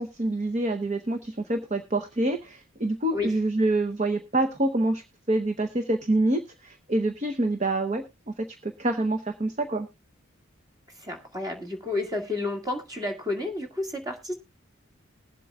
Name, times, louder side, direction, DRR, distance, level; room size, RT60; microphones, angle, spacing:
voice 1, 0.0-5.0 5.3-8.0 8.4-9.9, right 2 dB, 35° right, 7 dB, 0.8 m, -26 dB
voice 2, 11.0-14.3, left 2 dB, 20° right, 2 dB, 1.9 m, -31 dB
20.5 x 7.6 x 2.3 m, 0.25 s
head